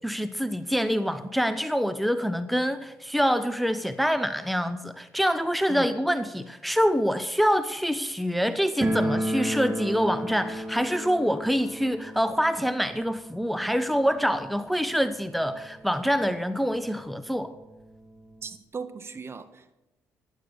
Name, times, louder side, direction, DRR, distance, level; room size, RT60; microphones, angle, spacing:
voice 1, 0.0-17.5, equal, ahead, 11 dB, 1.1 m, -26 dB
sound 1, 8.8-15.5 15.8-15.9 16.1-16.2 17.0-17.1 17.4-18.6, right 1 dB, 15° right, 2.7 m, -33 dB
voice 2, 18.4-19.7, right 5 dB, 35° right, 10 dB, 1.6 m, -38 dB
15.5 x 11.5 x 7.1 m, 0.98 s
hypercardioid pair, 50°, 7 cm